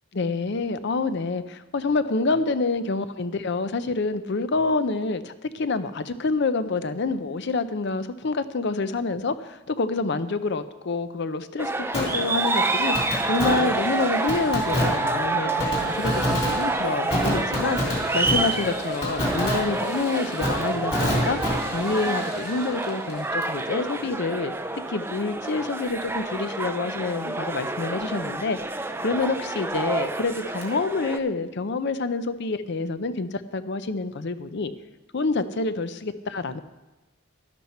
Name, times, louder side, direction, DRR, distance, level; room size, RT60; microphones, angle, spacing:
voice 1, 0.1-17.8 18.1-21.4 21.7-24.5 24.9-28.6 29.0-34.7 35.1-36.6, left 3 dB, 55° left, 12 dB, 0.6 m, -27 dB
sound 1, 11.6-31.2, right 2 dB, 10° right, 0.4 m, -28 dB
Fireworks, 11.9-23.6 23.9-24.0 30.6-30.7, left 1 dB, 30° left, 3.1 m, -29 dB
12.0 x 11.5 x 4.3 m, 1.1 s
head